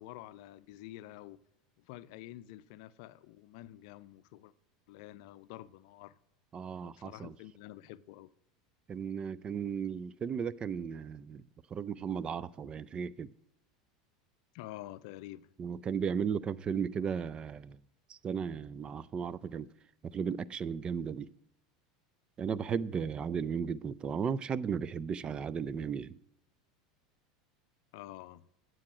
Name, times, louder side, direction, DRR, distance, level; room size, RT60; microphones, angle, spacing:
voice 1, 0.0-1.4 1.8-4.5 4.9-6.1 6.8-8.3 14.5-15.5 27.9-28.5, left 15 dB, 65° left, 0.5 m, -48 dB
voice 2, 6.5-7.3 8.9-11.4 11.7-13.3 15.6-17.8 18.1-19.7 20.0-21.3 22.4-26.2, right 7 dB, 30° right, 0.4 m, -35 dB
9.5 x 7.8 x 4.9 m
hypercardioid pair, 95°, 3 cm